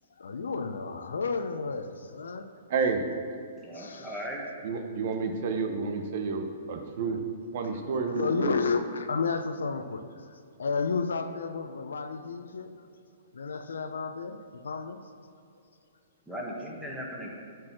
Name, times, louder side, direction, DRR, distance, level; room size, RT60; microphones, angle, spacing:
voice 1, 0.2-2.5 3.7-4.1 8.1-10.0 10.6-12.7 13.3-15.0, left 5 dB, 85° left, 8 dB, 0.7 m, -31 dB
voice 2, 2.7-3.1 4.6-7.2 7.5-8.5, right 5 dB, 55° right, 5 dB, 1.0 m, -30 dB
voice 3, 3.6-4.4 16.3-17.3, equal, 5° right, -4 dB, 1.8 m, -37 dB
10.5 x 4.8 x 6.0 m, 2.4 s
hypercardioid pair, 135°, 0 cm